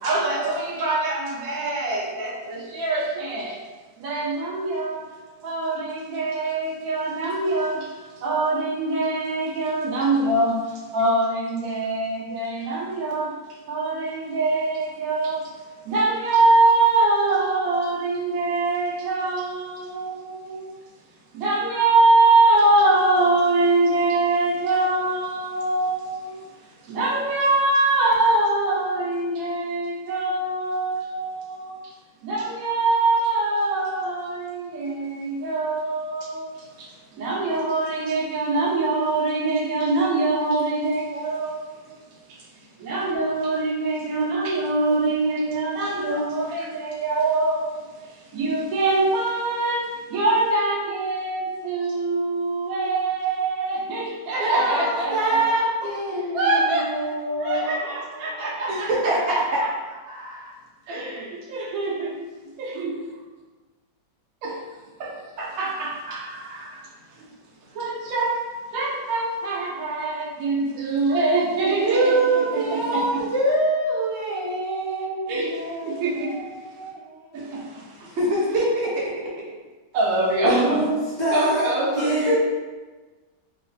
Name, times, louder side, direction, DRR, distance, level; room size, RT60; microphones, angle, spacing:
voice 1, 0.0-3.6 4.0-5.1 5.4-7.9 8.2-10.6 10.9-13.3 13.7-15.5 15.8-20.7 21.3-26.5 26.8-31.8 32.2-36.9 37.1-41.8 42.8-47.8 48.1-55.4 56.3-56.9 57.4-59.2 60.1-60.5 60.9-62.1 62.6-62.9 64.4-64.6 65.0-66.8 67.7-68.4 68.7-72.1 72.5-73.2 75.3-75.5 75.8-76.3 77.3-78.2 79.9-80.8 81.3-82.4, right 2 dB, 60° right, -4 dB, 1.1 m, -24 dB
voice 2, 54.4-59.4 71.8-77.7 78.2-78.9, right 2 dB, 85° right, -5 dB, 0.6 m, -25 dB
voice 3, 80.4-82.4, right 1 dB, 35° right, -12 dB, 0.6 m, -24 dB
3.1 x 2.9 x 2.6 m, 1.3 s
omnidirectional pair, 1.9 m